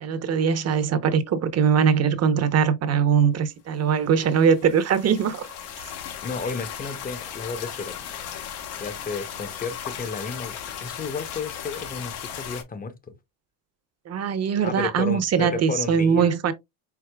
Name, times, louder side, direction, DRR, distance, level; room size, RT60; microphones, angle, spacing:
voice 1, 0.0-5.5 14.1-16.5, right 7 dB, 35° right, 0.8 m, -21 dB
sound 1, 4.3-12.6, left 9 dB, 90° left, 1.3 m, -36 dB
voice 2, 6.2-8.1 8.8-13.0 14.6-16.4, left 4 dB, 20° left, 0.7 m, -33 dB
4.7 x 4.2 x 2.2 m
cardioid pair, 115°, 45 cm